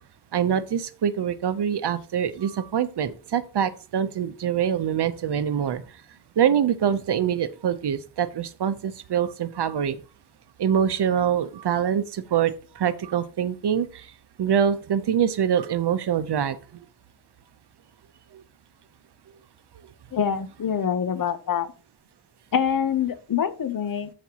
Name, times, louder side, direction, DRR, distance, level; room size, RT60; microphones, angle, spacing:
voice 1, 0.3-5.8 6.4-10.0 10.6-13.9 14.4-16.6, right 8 dB, 70° right, 13 dB, 0.7 m, -24 dB
voice 2, 20.1-21.7 22.5-24.1, left 8 dB, 55° left, 14 dB, 0.7 m, -25 dB
13.5 x 5.2 x 2.9 m, 0.37 s
wide cardioid pair, 165°, 41 cm